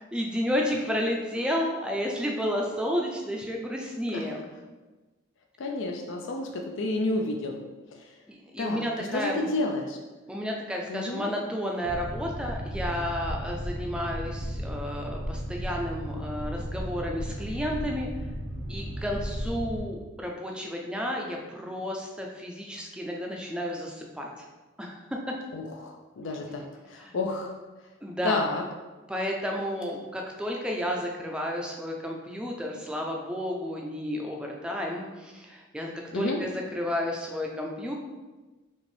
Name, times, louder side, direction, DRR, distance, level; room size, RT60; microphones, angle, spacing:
voice 1, 0.1-4.5 8.3-9.5 10.3-18.1 18.7-24.4 24.8-25.0 25.3-25.4 27.0-27.1 28.0-28.4 29.1-37.9, equal, 5° right, 0 dB, 0.4 m, -32 dB
voice 2, 5.6-7.6 8.0-8.2 8.6-10.0 10.9-11.3 25.5-27.5 28.2-28.6 36.1-36.4, left 2 dB, 65° left, 2 dB, 0.4 m, -31 dB
Boat Water vehicle, 11.8-19.8, equal, 70° right, 1.0 m, -34 dB
5.3 x 2.6 x 3.3 m, 1.2 s
head